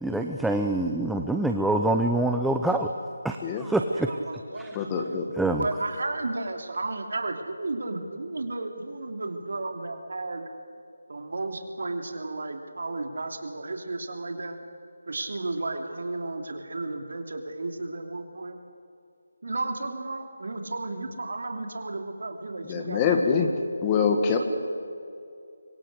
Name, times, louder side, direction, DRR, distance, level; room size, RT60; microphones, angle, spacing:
voice 1, 0.0-2.9 3.2-4.2 4.6-4.7 5.4-5.7, right 2 dB, ahead, 3 dB, 0.7 m, -25 dB
voice 2, 3.9-4.9 5.5-10.4 11.1-14.6 15.1-18.6 19.4-23.1, right 2 dB, 65° right, 4 dB, 2.9 m, -33 dB
voice 3, 4.7-5.3 22.6-23.5 23.8-24.4, left 6 dB, 20° left, 4 dB, 1.8 m, -24 dB
25.0 x 23.5 x 6.7 m, 2.5 s
figure-of-eight pair, 160°, 0 cm